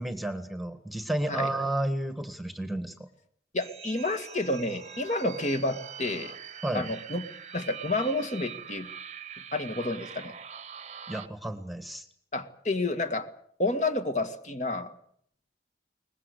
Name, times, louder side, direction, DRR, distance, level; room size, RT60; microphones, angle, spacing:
voice 1, 0.0-3.1 6.6-6.9 11.1-12.0, right 1 dB, ahead, 8 dB, 1.6 m, -32 dB
voice 2, 3.5-6.3 6.7-7.3 7.5-8.9 9.5-10.3 12.3-13.3 13.6-14.9, left 2 dB, 40° left, 8 dB, 1.9 m, -30 dB
sound 1, 3.6-11.3, right 7 dB, 40° right, 1.0 m, -43 dB
22.5 x 20.5 x 8.3 m, 0.64 s
head